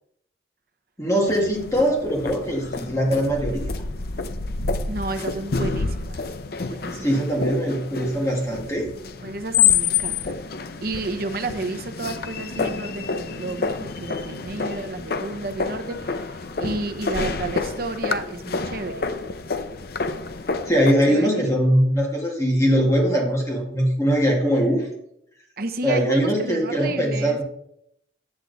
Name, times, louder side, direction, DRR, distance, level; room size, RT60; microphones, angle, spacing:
voice 1, 1.0-3.6 6.9-8.9 20.6-24.9 25.8-27.4, equal, 15° left, -1 dB, 1.8 m, -21 dB
sound 1, 1.3-20.9, left 5 dB, 55° left, 0.6 m, -28 dB
voice 2, 4.9-6.3 6.6-7.5 9.2-10.4 10.8-19.1 21.1-21.5 25.6-27.4, right 2 dB, 55° right, 8 dB, 0.8 m, -31 dB
9.8 x 7.4 x 4.0 m, 0.75 s
head